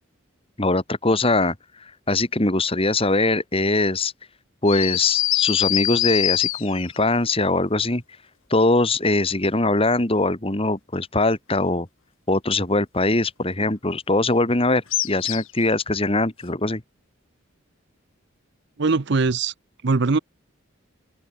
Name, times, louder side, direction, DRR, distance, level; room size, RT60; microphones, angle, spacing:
voice 1, 0.6-1.6 2.1-4.1 4.6-8.0 8.5-11.9 12.3-16.8, left 2 dB, 30° left, 2.1 m, -21 dB
sound 1, 4.7-7.0 14.9-15.6, left 15 dB, 75° left, 1.3 m, -23 dB
voice 2, 18.8-19.5 19.8-20.2, right 4 dB, 55° right, 0.7 m, -20 dB
head